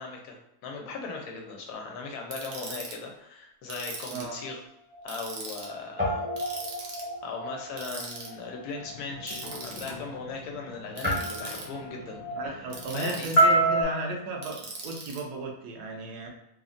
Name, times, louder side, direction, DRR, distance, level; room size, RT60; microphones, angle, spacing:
voice 1, 0.0-4.6 5.0-6.3 7.2-12.2 12.9-13.3, left 4 dB, 85° left, 1 dB, 1.2 m, -38 dB
Ratchet pawl, 2.3-2.9 3.7-4.4 5.1-5.7 6.4-7.1 7.8-8.3 9.3-9.9 11.0-11.6 12.7-13.5 14.4-15.2, right 3 dB, 65° right, 1.0 m, -40 dB
Guitar, 3.9-5.7 6.0-14.6, left 1 dB, 15° right, 0.4 m, -37 dB
voice 2, 4.1-4.4 12.4-16.3, right 3 dB, 85° right, 1 dB, 1.2 m, -35 dB
sound 1, 8.8-13.8, right 2 dB, 65° left, 0.5 m, -27 dB
3.4 x 2.1 x 2.5 m, 0.83 s
omnidirectional pair, 1.7 m